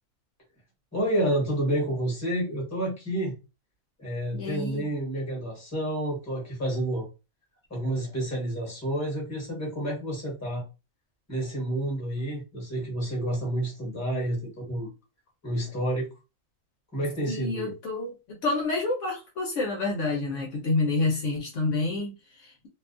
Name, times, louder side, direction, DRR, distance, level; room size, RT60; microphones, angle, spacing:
voice 1, 0.9-3.3 4.0-7.1 7.7-10.6 11.3-14.9 15.4-16.1 16.9-17.7, right 1 dB, 15° left, 1.1 m, -29 dB
voice 2, 4.3-4.9 17.3-22.7, left 3 dB, 70° left, 0.9 m, -29 dB
2.6 x 2.3 x 2.4 m
omnidirectional pair, 1.4 m